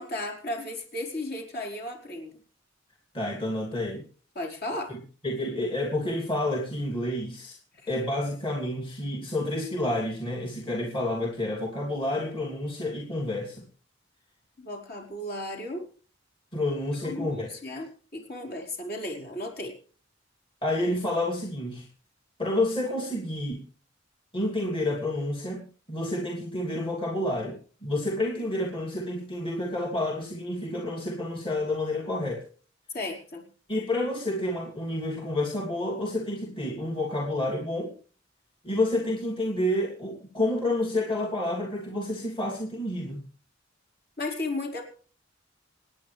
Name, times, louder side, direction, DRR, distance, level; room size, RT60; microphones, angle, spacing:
voice 1, 0.0-2.3 4.3-4.9 7.7-7.9 14.6-15.8 17.0-19.7 32.9-33.4 44.2-44.8, left 1 dB, 55° left, 1 dB, 5.0 m, -35 dB
voice 2, 3.1-4.0 4.9-7.6 7.9-13.6 16.5-17.5 20.6-21.9 22.4-23.6 24.3-32.4 33.7-37.9 38.6-43.2, left 1 dB, 30° left, -2 dB, 3.0 m, -29 dB
28.0 x 9.6 x 3.4 m, 0.41 s
head